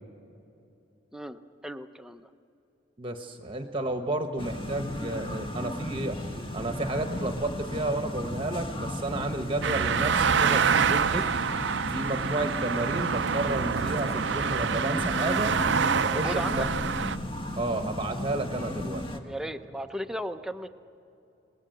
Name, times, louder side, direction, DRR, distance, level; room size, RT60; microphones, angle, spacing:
voice 1, 1.1-2.3 16.0-16.7 19.1-20.7, equal, 5° right, 7 dB, 0.7 m, -36 dB
voice 2, 3.0-11.3 11.9-15.5 16.0-16.9 17.6-19.0, right 2 dB, 25° right, 5 dB, 1.1 m, -32 dB
sound 1, 4.4-19.2, left 1 dB, 25° left, 1.7 m, -35 dB
sound 2, 9.6-17.2, right 6 dB, 65° right, 0.5 m, -26 dB
28.5 x 19.5 x 7.8 m, 2.8 s
head